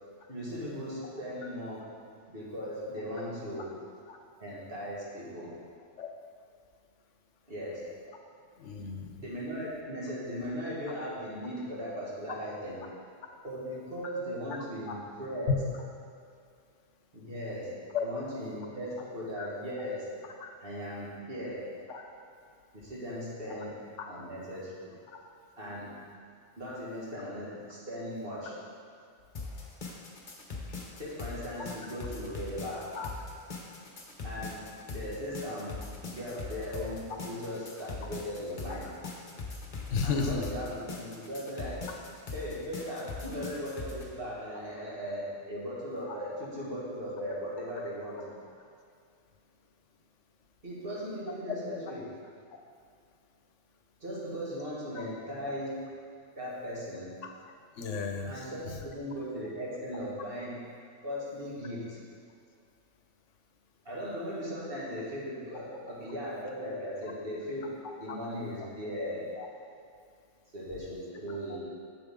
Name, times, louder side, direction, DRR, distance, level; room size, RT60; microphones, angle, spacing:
voice 1, 0.3-1.8 2.3-3.7 4.4-5.6 7.5-7.9 9.2-12.9 13.4-15.6 17.1-20.1 20.6-21.7 22.7-23.8 24.1-24.9 25.6-26.0 26.6-28.5 31.0-32.9 34.2-38.9 40.0-41.9 42.3-48.3 50.6-52.0 54.0-55.8 56.4-57.2 58.2-60.7 61.0-62.0 63.8-69.3 70.5-71.6, equal, 50° right, -7 dB, 2.3 m, -38 dB
voice 2, 8.6-9.2 14.9-15.0 15.5-15.6 17.9-18.0 19.4-19.5 20.4-20.5 21.9-22.0 32.9-33.1 39.9-40.4 57.8-58.3 69.4-69.5, left 5 dB, 75° left, 3 dB, 1.1 m, -32 dB
sound 1, 29.3-44.0, left 3 dB, 40° left, 1.0 m, -41 dB
8.7 x 7.0 x 3.7 m, 2.3 s
omnidirectional pair, 1.3 m